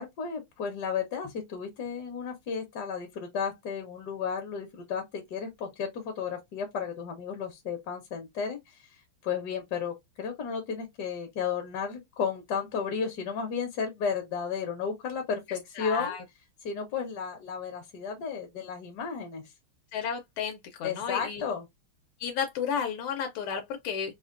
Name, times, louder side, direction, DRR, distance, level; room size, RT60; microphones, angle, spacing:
voice 1, 0.0-16.2 16.6-19.4 20.8-21.7, left 6 dB, 60° left, 1.1 m, -33 dB
voice 2, 15.8-16.2 19.9-21.4 22.2-24.1, left 7 dB, 85° left, 1.6 m, -32 dB
4.2 x 2.1 x 2.4 m
omnidirectional pair, 2.4 m